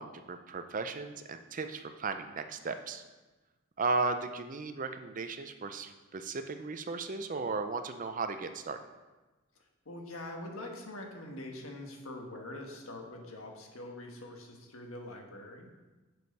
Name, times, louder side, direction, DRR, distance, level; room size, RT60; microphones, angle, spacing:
voice 1, 0.0-3.0 3.8-8.8, right 4 dB, 40° right, 8 dB, 0.5 m, -35 dB
voice 2, 9.8-15.7, left 1 dB, 85° left, 2 dB, 1.5 m, -44 dB
6.9 x 6.5 x 5.4 m, 1.2 s
head